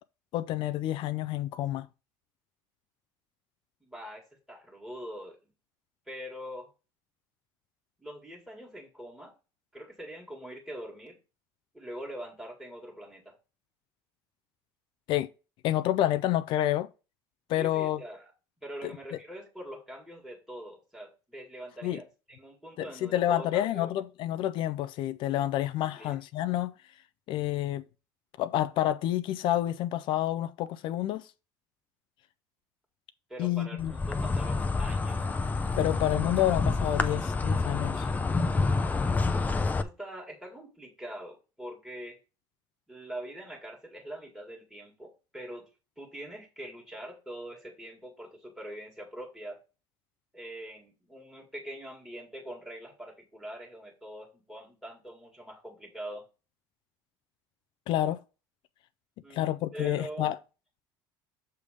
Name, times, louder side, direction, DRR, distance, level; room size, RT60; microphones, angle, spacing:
voice 1, 0.3-1.9 15.1-15.3 15.6-16.9 17.5-18.0 18.8-19.2 21.8-22.0 22.8-26.7 27.3-27.8 28.4-31.3 33.4-33.9 35.8-38.1 57.9-58.2 59.3-60.4, left 13 dB, 60° left, 0.4 m, -29 dB
voice 2, 3.8-5.5 6.1-6.7 8.0-9.3 9.7-11.2 11.7-13.4 17.6-18.3 18.6-23.9 26.0-26.2 33.3-35.3 39.8-42.2 42.9-45.7 46.0-49.6 50.3-56.2 59.2-60.4, right 1 dB, ahead, 1.8 m, -43 dB
Insect, 33.8-39.8, left 3 dB, 15° left, 0.6 m, -28 dB
6.7 x 3.5 x 4.9 m
supercardioid pair, 115°, 10 cm